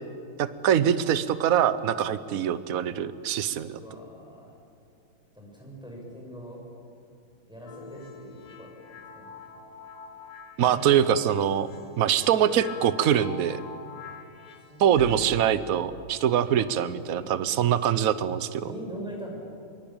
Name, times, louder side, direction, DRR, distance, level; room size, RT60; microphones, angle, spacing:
voice 1, 0.4-3.8 10.6-11.7 12.0-13.6 14.8-18.6, right 9 dB, 55° right, 14 dB, 1.0 m, -23 dB
voice 2, 3.8-4.5 5.3-6.6 7.5-9.4 10.7-11.1 12.1-12.3 14.1-14.2 14.7-14.8 17.1-17.2 18.6-19.3, right 1 dB, ahead, -2 dB, 6.6 m, -42 dB
sound 1, 7.7-15.3, left 4 dB, 50° left, 2.0 m, -44 dB
23.5 x 23.0 x 8.9 m, 2.5 s
omnidirectional pair, 2.3 m